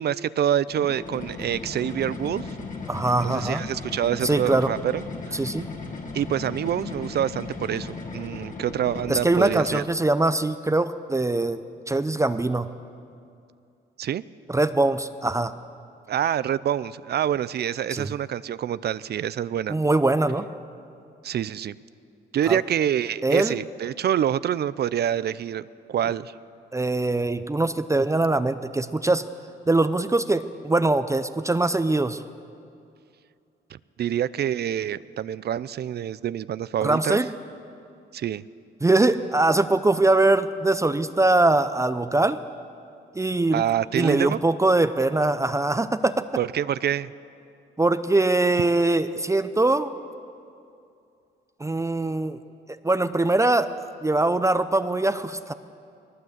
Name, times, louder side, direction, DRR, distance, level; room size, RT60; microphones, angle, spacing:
voice 1, 0.0-2.5 3.2-5.0 5.3-5.4 6.1-9.8 14.0-14.2 16.1-19.8 21.2-21.8 22.3-26.3 33.7-37.2 38.1-38.4 43.5-44.4 46.4-47.1, right 10 dB, 55° right, 17 dB, 0.5 m, -26 dB
sound 1, 0.7-9.8, left 3 dB, 40° left, 2.6 m, -36 dB
voice 2, 2.9-3.6 4.2-4.7 5.3-5.7 9.1-12.7 14.5-15.5 17.9-18.1 19.7-20.5 22.5-22.6 23.2-23.6 26.7-29.3 29.7-32.2 36.8-37.3 38.8-42.4 43.1-43.6 43.9-46.3 47.8-49.9 51.6-52.4 52.8-55.5, right 2 dB, 15° right, 11 dB, 0.7 m, -22 dB
19.5 x 18.0 x 8.0 m, 2.5 s
cardioid pair, 90°, 20 cm